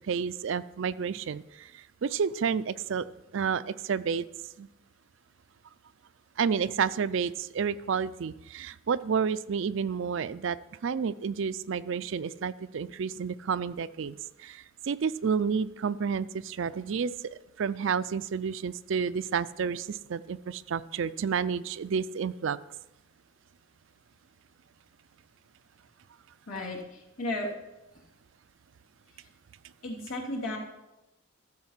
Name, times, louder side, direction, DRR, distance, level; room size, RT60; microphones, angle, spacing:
voice 1, 0.1-3.1 3.3-4.3 4.6-4.7 6.4-10.6 10.8-17.1 17.6-22.6, right 6 dB, 60° right, 16 dB, 0.4 m, -30 dB
voice 2, 26.5-27.5 29.8-30.6, left 1 dB, 85° left, -2 dB, 2.8 m, -34 dB
14.0 x 6.6 x 5.7 m, 0.96 s
head